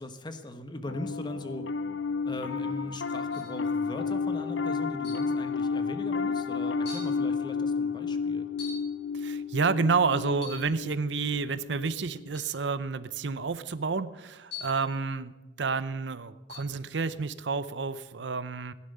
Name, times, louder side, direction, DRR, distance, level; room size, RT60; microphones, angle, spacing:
voice 1, 0.0-1.7 2.2-8.5, left 1 dB, 25° left, 8 dB, 1.2 m, -40 dB
Piano, 0.9-12.4, left 5 dB, 85° left, 0.7 m, -31 dB
sound 1, 3.3-3.6 5.0-5.4 6.2-6.3 6.9-7.2 8.6-9.0 10.3-10.7 12.3-12.6 14.5-14.9 16.5-16.7, left 5 dB, 65° left, 6.6 m, -43 dB
voice 2, 9.1-15.3 15.6-18.7, right 4 dB, 75° right, 14 dB, 0.7 m, -30 dB
16.0 x 10.5 x 6.8 m, 1.2 s
head